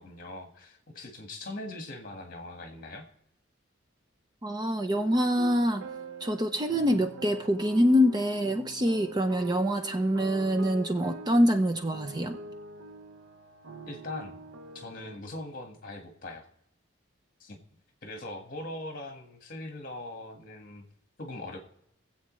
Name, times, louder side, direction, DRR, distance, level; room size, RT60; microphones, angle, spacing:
voice 1, 0.0-3.0 13.9-14.4 14.7-16.5 17.4-17.6 18.0-20.8 21.2-21.6, left 2 dB, 45° left, 4 dB, 1.6 m, -41 dB
voice 2, 4.4-5.8 6.2-12.4, equal, 20° right, 7 dB, 0.5 m, -25 dB
sound 1, 4.9-15.2, right 3 dB, 90° right, 0.8 m, -44 dB
22.0 x 7.8 x 3.1 m, 0.77 s
head